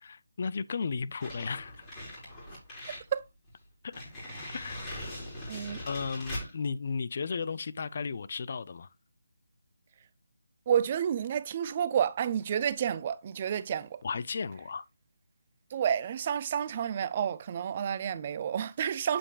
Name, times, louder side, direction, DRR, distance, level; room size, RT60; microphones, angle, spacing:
voice 1, 0.0-1.8 3.8-3.9 4.5-4.8 5.9-8.9 14.0-14.9, left 5 dB, 45° left, 0.5 m, -34 dB
sound 1, 1.2-3.1 3.5-3.6 3.9-6.5, left 1 dB, 20° left, 4.5 m, -41 dB
voice 2, 5.5-5.8 10.7-14.0 15.7-19.2, right 8 dB, 30° right, 0.5 m, -30 dB
8.3 x 7.8 x 2.4 m
figure-of-eight pair, 160°, 0 cm